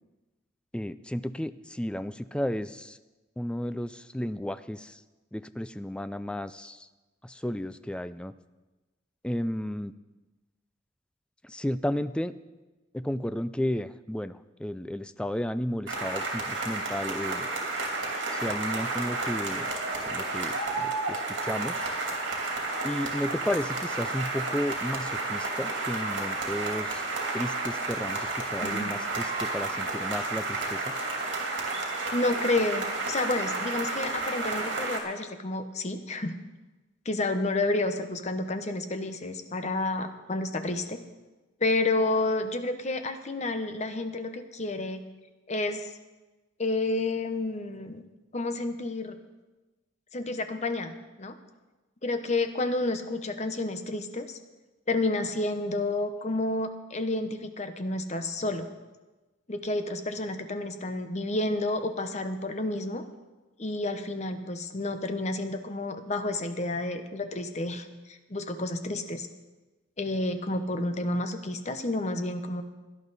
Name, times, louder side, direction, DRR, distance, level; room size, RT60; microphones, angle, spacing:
voice 1, 0.7-3.0 3.4-5.0 5.3-6.9 7.2-8.3 9.2-9.9 11.4-12.3 12.9-17.5 18.3-19.7 20.1-21.9 22.8-27.0 27.3-30.9, left 1 dB, 5° left, 13 dB, 0.3 m, -33 dB
sound 1, 15.9-35.0, right 3 dB, 75° right, 2.8 m, -31 dB
voice 2, 28.6-28.9 32.1-36.4 37.0-41.0 41.6-45.0 45.5-45.9 46.6-48.0 48.3-49.2 50.1-50.9 51.2-51.4 52.0-54.4 54.9-58.7 59.5-63.0 63.6-69.3 70.0-72.6, left 2 dB, 35° left, 8 dB, 0.9 m, -30 dB
17.0 x 11.0 x 4.1 m, 1.2 s
head